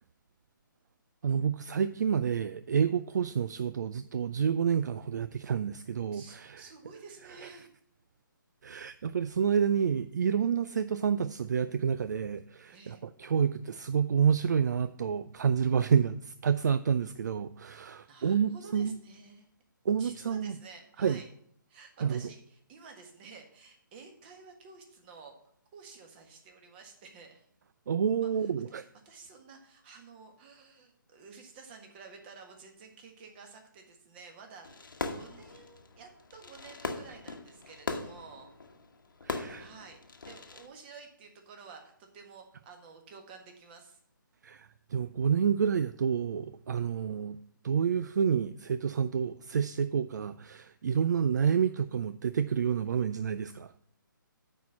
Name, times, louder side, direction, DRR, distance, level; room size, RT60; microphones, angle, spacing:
voice 1, 1.2-6.6 7.4-7.5 8.6-19.0 19.9-20.6 21.0-21.2 22.0-22.3 27.9-28.8 39.2-39.7 44.4-47.4 47.6-53.8, right 7 dB, 55° right, 13 dB, 0.4 m, -29 dB
voice 2, 6.1-7.7 12.7-13.0 18.1-19.5 20.0-21.3 21.7-25.4 25.7-27.5 28.2-28.5 29.0-38.5 39.6-40.0 40.2-44.0, right 4 dB, 30° right, 4 dB, 1.6 m, -51 dB
Fireworks, 34.6-40.7, left 3 dB, 75° left, 1.1 m, -40 dB
9.1 x 4.4 x 7.1 m, 0.67 s
figure-of-eight pair, 145°, 11 cm